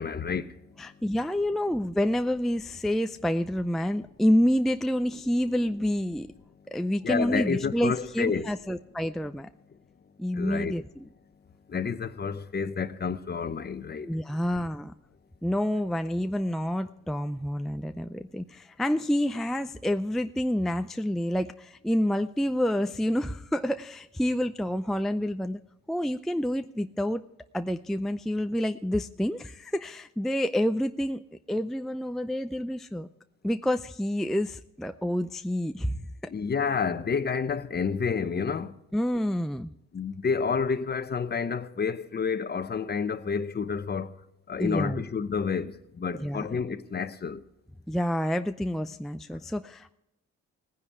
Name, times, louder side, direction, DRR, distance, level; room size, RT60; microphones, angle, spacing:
voice 1, 0.0-1.0 7.0-8.5 10.3-10.8 11.7-14.2 36.3-38.7 39.9-44.2 44.5-47.4 49.3-49.4, left 5 dB, 35° left, 0.9 m, -30 dB
voice 2, 0.8-6.3 6.7-9.5 10.2-10.8 14.0-14.9 15.4-25.6 25.9-27.2 27.5-31.2 31.5-33.1 33.4-36.1 38.9-39.7 44.6-45.0 46.2-46.5 47.9-49.9, equal, ahead, 0.4 m, -28 dB
18.0 x 10.0 x 4.8 m
cardioid pair, 90°, 30 cm